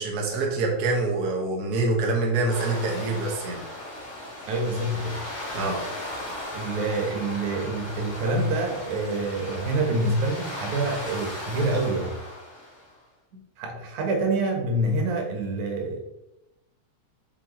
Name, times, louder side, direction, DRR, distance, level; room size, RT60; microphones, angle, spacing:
voice 1, 0.0-3.7 5.5-5.8, right 3 dB, 45° right, -1 dB, 1.4 m, -25 dB
sound 1, 2.5-13.0, left 1 dB, 35° left, 3.4 m, -37 dB
voice 2, 4.5-5.2 6.5-12.2 13.6-16.0, right 2 dB, 90° right, 2 dB, 2.7 m, -26 dB
7.9 x 6.1 x 3.0 m, 0.91 s
omnidirectional pair, 3.3 m